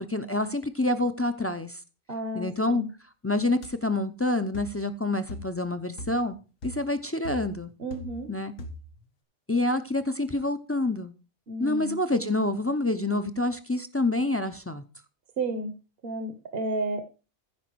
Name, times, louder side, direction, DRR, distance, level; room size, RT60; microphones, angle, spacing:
voice 1, 0.0-1.8 2.3-2.8 3.2-6.4 6.6-7.7 8.3-8.5 9.5-11.1 11.6-14.8, left 2 dB, 15° left, 9 dB, 0.5 m, -27 dB
voice 2, 2.1-2.9 7.8-8.3 11.5-12.0 15.4-15.7 16.0-17.0, right 2 dB, 55° right, 8 dB, 1.2 m, -32 dB
sound 1, 3.6-3.8 4.5-4.8 5.3-5.6 6.0-6.3 6.6-6.9 7.2-8.3 8.6-9.0, left 1 dB, 80° left, 1.7 m, -40 dB
15.0 x 5.1 x 4.6 m, 0.33 s
omnidirectional pair, 1.2 m